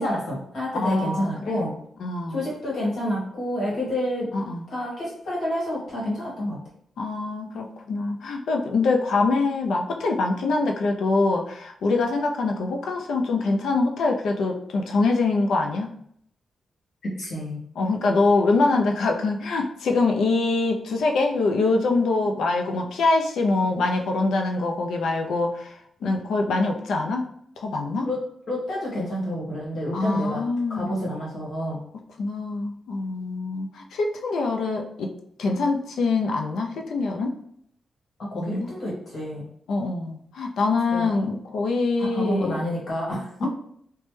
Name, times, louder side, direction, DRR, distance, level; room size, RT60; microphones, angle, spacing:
voice 1, 0.0-1.7 2.3-4.3 4.7-6.6 17.2-17.6 28.0-28.2 28.5-30.4 30.7-31.8 38.2-39.4 40.9-41.1 42.0-43.5, equal, 70° left, -5 dB, 1.4 m, -29 dB
voice 2, 0.7-1.7 2.0-2.5 4.3-4.6 7.0-15.9 17.8-27.3 27.6-28.1 29.9-30.9 32.2-35.1 35.4-37.3 38.3-38.7 39.7-42.7 43.4-43.5, left 3 dB, 85° left, 2 dB, 0.4 m, -24 dB
3.1 x 2.1 x 3.1 m, 0.69 s
cardioid pair, 100°, 0 cm